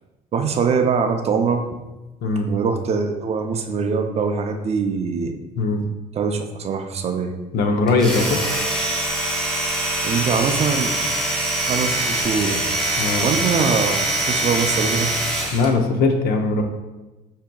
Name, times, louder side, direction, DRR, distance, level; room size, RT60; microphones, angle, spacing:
voice 1, 0.3-1.6 2.5-5.4 6.1-7.3 10.0-11.0 11.7-12.6 13.2-15.1, right 5 dB, 40° right, 5 dB, 0.4 m, -22 dB
voice 2, 7.5-8.4 13.0-13.3 15.5-16.6, left 3 dB, 65° left, 5 dB, 0.6 m, -20 dB
Domestic sounds home sounds, 7.9-15.7, right 1 dB, 5° left, 0.8 m, -23 dB
5.7 x 2.7 x 2.2 m, 1.1 s
cardioid pair, 110°, 17 cm